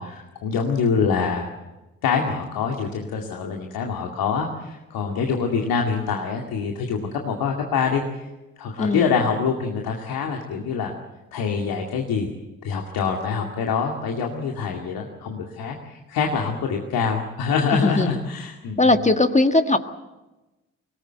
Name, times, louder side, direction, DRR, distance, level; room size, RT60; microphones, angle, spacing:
voice 1, 0.0-1.5 2.0-7.0 7.2-8.0 8.6-10.9 11.3-12.3 12.6-19.1, left 5 dB, 65° left, 1 dB, 2.4 m, -25 dB
voice 2, 8.8-9.2 17.7-18.2 18.8-19.8, left 2 dB, 20° left, 8 dB, 1.6 m, -19 dB
23.5 x 19.0 x 7.9 m, 1.1 s
hypercardioid pair, 45°, 38 cm